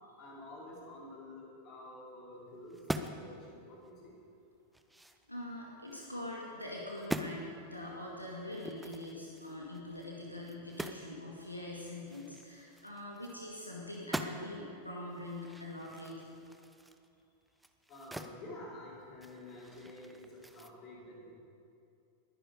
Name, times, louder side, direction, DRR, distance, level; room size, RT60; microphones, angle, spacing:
voice 1, 0.2-4.1 17.9-21.3, left 1 dB, 35° left, -4 dB, 4.6 m, -49 dB
sound 1, 2.7-3.3 3.8-3.9 4.4-6.1 6.5-6.7 7.0-7.4 8.5-11.1 11.4-11.5 11.8-13.6 13.9-14.6 15.1-18.4 18.7-20.7, right 1 dB, 5° right, 0.7 m, -43 dB
voice 2, 5.3-16.1, left 1 dB, 85° left, -3 dB, 2.0 m, -43 dB
21.0 x 10.0 x 5.3 m, 2.5 s
figure-of-eight pair, 90°, 0 cm